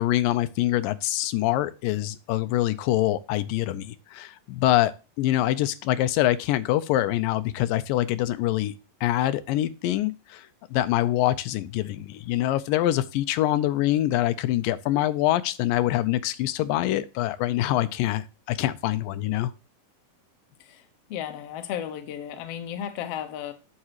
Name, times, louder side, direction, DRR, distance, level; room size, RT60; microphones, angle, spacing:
voice 1, 0.0-4.9 5.2-8.7 9.0-10.5 10.7-19.5, left 14 dB, 85° left, 2.3 m, -25 dB
voice 2, 21.1-23.5, left 10 dB, 65° left, 1.6 m, -34 dB
9.6 x 6.5 x 2.9 m
omnidirectional pair, 3.9 m